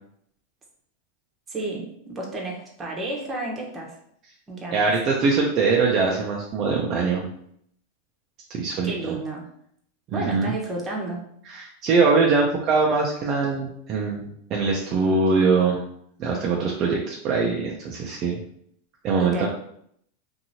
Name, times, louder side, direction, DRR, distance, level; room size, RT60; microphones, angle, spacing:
voice 1, 1.5-4.0 4.5-4.9 8.8-9.5 10.1-11.2 19.2-19.5, right 2 dB, 20° right, -2 dB, 0.9 m, -31 dB
voice 2, 4.7-7.3 8.5-9.1 10.1-10.5 11.5-15.8 16.2-18.4 19.0-19.5, right 4 dB, 40° right, -1 dB, 0.5 m, -22 dB
2.8 x 2.6 x 2.7 m, 0.69 s
hypercardioid pair, 120°, 0 cm